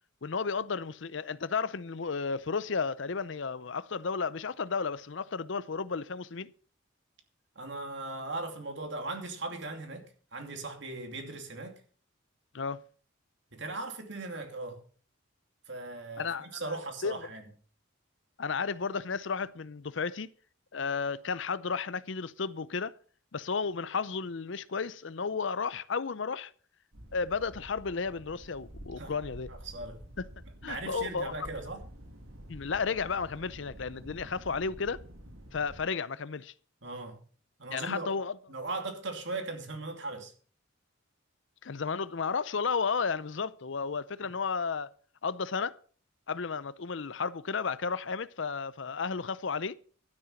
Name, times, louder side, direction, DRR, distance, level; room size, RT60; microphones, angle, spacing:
voice 1, 0.2-6.5 12.5-12.8 16.2-16.6 17.0-17.2 18.4-20.3 20.7-22.9 23.3-26.5 27.1-29.5 30.2-30.3 30.6-31.3 32.5-35.0 35.5-36.5 37.7-38.3 41.6-44.9 45.2-45.8 46.3-49.7, left 5 dB, 60° left, 0.6 m, -33 dB
voice 2, 7.6-11.8 13.5-14.8 15.7-17.4 29.0-29.1 29.5-30.0 30.6-31.8 36.8-37.2 37.6-38.1 38.5-40.3, right 2 dB, 60° right, 2.7 m, -38 dB
sound 1, 26.9-35.9, equal, 90° right, 2.3 m, -49 dB
12.5 x 9.8 x 5.7 m
head